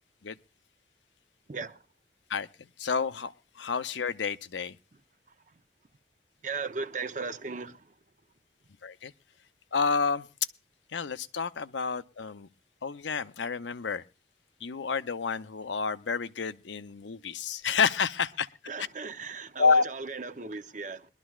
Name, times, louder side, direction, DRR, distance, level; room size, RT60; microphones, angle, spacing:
voice 1, 1.5-1.8 6.4-7.8 18.7-21.1, right 4 dB, 45° right, 0.7 m, -36 dB
voice 2, 2.8-4.8 8.8-9.1 9.7-10.3 10.9-12.5 12.8-14.0 14.6-18.5 19.6-19.8, left 5 dB, 80° left, 0.6 m, -29 dB
22.0 x 12.0 x 2.4 m
head